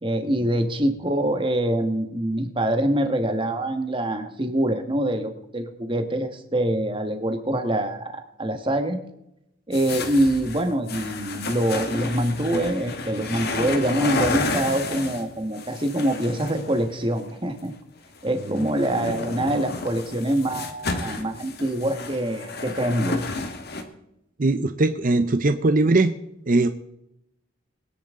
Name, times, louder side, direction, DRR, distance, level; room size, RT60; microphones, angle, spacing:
voice 1, 0.0-9.0 9.7-17.7 18.2-23.2, right 1 dB, 25° right, 7 dB, 1.5 m, -25 dB
sound 1, 9.7-17.2 18.1-23.8, left 3 dB, 50° left, 1.7 m, -31 dB
voice 2, 24.4-26.1 26.5-26.7, right 2 dB, 40° right, 9 dB, 0.6 m, -20 dB
22.0 x 10.5 x 3.7 m, 0.83 s
head